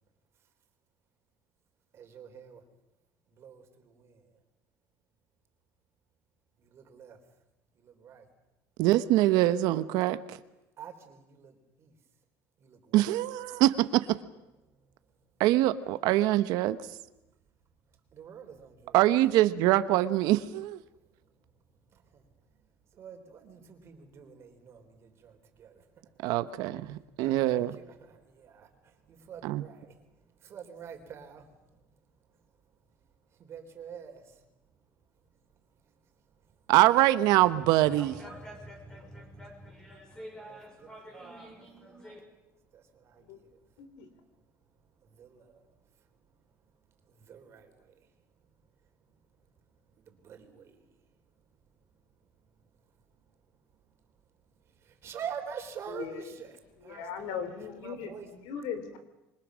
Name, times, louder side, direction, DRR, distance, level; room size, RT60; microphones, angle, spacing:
voice 1, 1.9-2.6 3.3-4.3 6.6-7.2 7.7-8.3 10.8-11.9 12.6-13.1 18.1-19.0 21.9-22.3 22.9-25.9 26.2-26.5 27.2-30.0 30.4-31.5 33.4-34.4 37.2-37.3 40.4-41.6 42.7-43.6 45.0-45.7 47.1-48.1 50.0-50.9 54.8-58.3, right 7 dB, 40° right, 5 dB, 3.8 m, -47 dB
voice 2, 8.8-10.4 12.9-14.2 15.4-16.8 18.9-20.8 26.2-27.8 29.4-29.6 36.7-38.2, right 15 dB, 75° right, 12 dB, 1.1 m, -24 dB
sound 1, 37.3-42.2, equal, 10° left, 5.4 m, -47 dB
voice 3, 43.8-44.1 55.9-56.2 56.9-58.1 58.5-59.0, left 7 dB, 85° left, 10 dB, 3.9 m, -38 dB
27.5 x 24.0 x 6.4 m, 0.97 s
cardioid pair, 150°, 7 cm